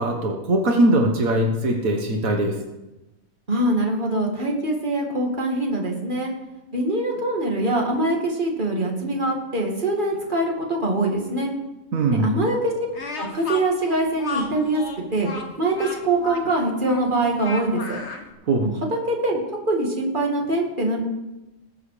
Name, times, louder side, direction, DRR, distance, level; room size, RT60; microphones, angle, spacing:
voice 1, 0.0-2.5 11.9-12.4 18.5-18.7, right 1 dB, 85° right, 2 dB, 1.7 m, -21 dB
voice 2, 3.5-6.3 6.7-11.5 12.2-12.7 13.2-14.8 15.1-15.3 15.6-18.0 18.6-18.7 19.1-19.4 19.6-21.0, right 2 dB, 35° right, -1 dB, 2.5 m, -23 dB
Speech, 12.9-18.3, left 3 dB, 55° left, 1.7 m, -33 dB
20.0 x 7.7 x 5.0 m, 1.0 s
omnidirectional pair, 1.4 m